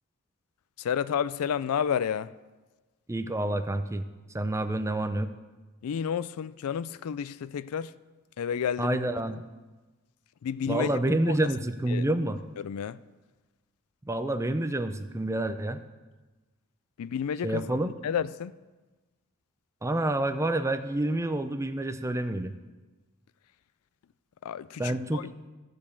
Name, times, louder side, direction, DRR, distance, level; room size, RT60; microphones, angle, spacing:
voice 1, 0.8-2.3 5.8-7.9 8.4-9.0 10.4-11.3 11.9-12.0 12.6-13.0 17.0-17.7 18.0-18.5 24.4-25.3, left 8 dB, 75° left, 0.4 m, -31 dB
voice 2, 3.1-4.0 4.3-5.3 8.8-9.4 10.7-12.4 14.1-15.8 17.4-17.9 19.8-22.5 24.8-25.3, right 1 dB, 15° right, 0.5 m, -28 dB
14.0 x 5.1 x 7.0 m
head